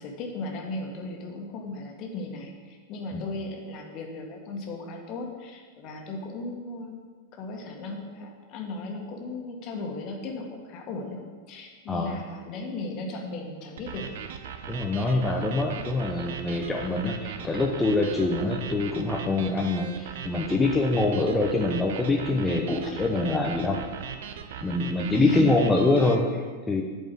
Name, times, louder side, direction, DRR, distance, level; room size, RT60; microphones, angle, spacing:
voice 1, 0.0-14.1 25.2-25.5, left 3 dB, 40° left, 1 dB, 1.8 m, -36 dB
voice 2, 11.9-12.2 14.7-23.8 24.6-26.8, left 2 dB, 10° left, -1 dB, 0.9 m, -25 dB
sound 1, 13.8-26.1, right 7 dB, 55° right, 0.8 m, -39 dB
8.9 x 5.4 x 7.9 m, 1.5 s
figure-of-eight pair, 90°, 0 cm